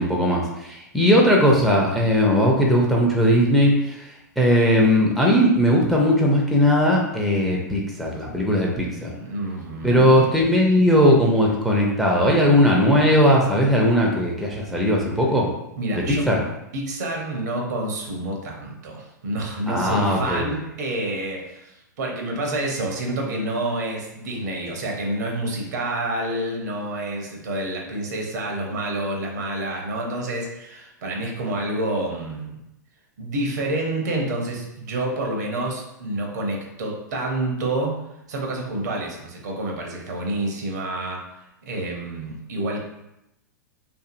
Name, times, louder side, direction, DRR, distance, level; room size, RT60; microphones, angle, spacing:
voice 1, 0.0-4.0 4.4-9.1 9.8-15.5 15.9-16.4 19.7-20.5, equal, ahead, -2 dB, 0.5 m, -18 dB
voice 2, 9.2-10.2 15.8-16.3 16.7-32.6 33.2-38.0 38.3-41.3 41.7-42.8, right 1 dB, 65° right, 0 dB, 0.7 m, -28 dB
2.6 x 2.6 x 2.5 m, 0.86 s
figure-of-eight pair, 100°, 10 cm